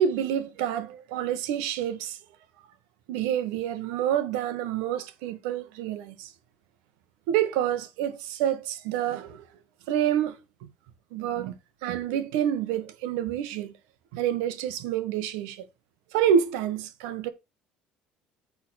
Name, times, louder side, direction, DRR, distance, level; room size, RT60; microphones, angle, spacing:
voice 1, 0.0-2.2 3.1-6.3 7.3-9.5 9.9-10.7 11.1-11.5 11.8-13.7 14.1-15.7 16.1-17.3, right 9 dB, 90° right, 1.2 m, -28 dB
8.3 x 3.7 x 6.1 m
cardioid pair, 100°, 3 cm